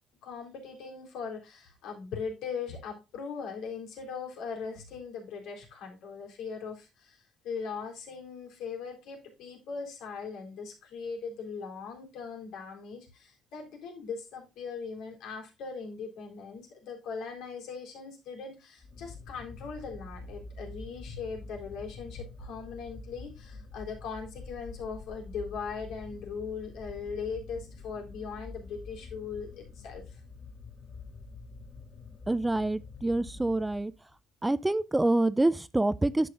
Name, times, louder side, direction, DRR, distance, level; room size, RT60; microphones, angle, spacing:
voice 1, 0.2-30.2, left 5 dB, 75° left, 3.7 m, -40 dB
sound 1, 18.8-34.1, left 3 dB, 45° left, 3.1 m, -46 dB
voice 2, 32.3-33.9 34.4-36.3, right 2 dB, 10° right, 0.3 m, -26 dB
10.5 x 6.9 x 2.4 m
cardioid pair, 135°, 0 cm